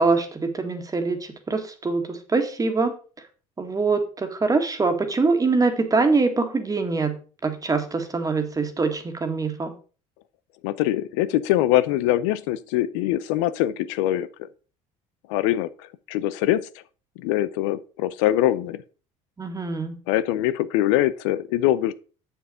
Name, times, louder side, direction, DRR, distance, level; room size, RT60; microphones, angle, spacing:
voice 1, 0.0-3.0 3.6-9.7 19.4-19.9, right 3 dB, 25° right, 1.8 m, -24 dB
voice 2, 10.6-14.3 15.3-15.7 16.1-16.6 17.2-18.8 20.1-21.9, left 13 dB, 85° left, 0.6 m, -23 dB
7.1 x 7.0 x 4.9 m
supercardioid pair, 85°, 15 cm